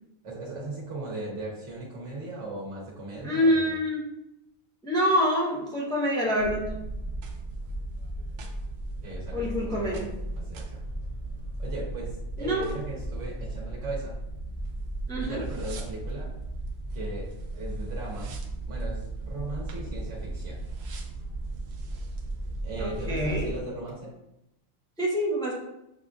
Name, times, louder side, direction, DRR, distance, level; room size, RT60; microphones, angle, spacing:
voice 1, 0.2-3.6 9.0-10.1 10.3-10.8 11.6-14.2 15.2-16.3 16.9-17.3 17.5-18.4 18.7-20.6 22.6-24.1, right 2 dB, 85° right, -5 dB, 1.3 m, -38 dB
voice 2, 3.2-4.0 4.8-6.7 9.3-10.1 12.4-12.7 15.1-15.4 22.8-23.5 25.0-25.5, equal, 5° left, -3 dB, 0.5 m, -26 dB
sound 1, 6.4-23.6, right 2 dB, 65° right, 0.8 m, -35 dB
6.5 x 2.5 x 2.3 m, 0.88 s
omnidirectional pair, 1.2 m